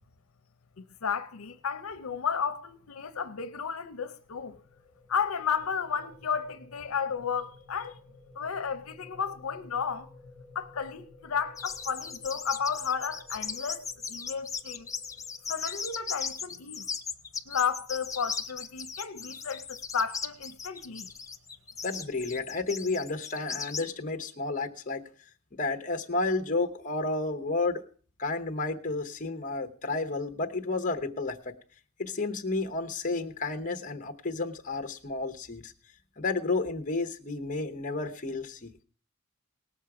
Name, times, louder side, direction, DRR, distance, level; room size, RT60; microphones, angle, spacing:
voice 1, 0.8-4.6 5.1-8.0 8.4-10.1 10.5-14.9 15.5-16.9 17.5-21.1, left 6 dB, 80° left, 0.7 m, -33 dB
sound 1, 4.0-16.0, left 3 dB, 65° right, 5.1 m, -55 dB
sound 2, 11.6-23.9, left 6 dB, 15° left, 0.6 m, -37 dB
voice 2, 21.8-25.0 25.5-27.8 28.2-31.5 32.0-35.7 36.2-38.8, left 3 dB, 40° left, 1.0 m, -31 dB
18.5 x 7.3 x 4.8 m
head